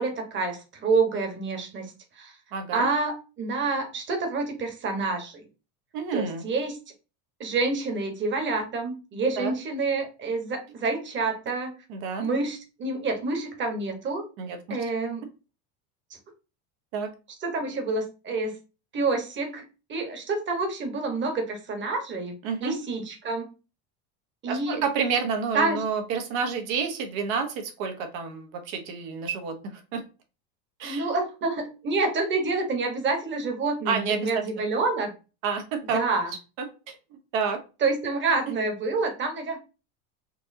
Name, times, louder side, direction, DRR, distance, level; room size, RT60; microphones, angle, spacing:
voice 1, 0.0-2.4 2.7-5.4 6.1-6.8 7.4-11.7 12.2-14.2 14.7-15.2 17.4-18.5 18.9-19.6 19.9-22.3 22.6-23.5 24.4-24.8 25.5-25.8 30.8-35.1 35.9-36.3 37.8-39.6, right 3 dB, 25° right, 4 dB, 1.2 m, -28 dB
voice 2, 2.5-2.9 5.9-6.4 9.4-9.5 11.9-12.3 14.4-14.8 16.9-17.1 22.4-22.7 24.5-30.0 30.8-31.1 33.9-34.4 35.4-36.0 36.9-37.0 37.3-37.6, right 5 dB, 70° right, 5 dB, 1.2 m, -29 dB
4.4 x 2.9 x 2.7 m, 0.31 s
supercardioid pair, 125°, 42 cm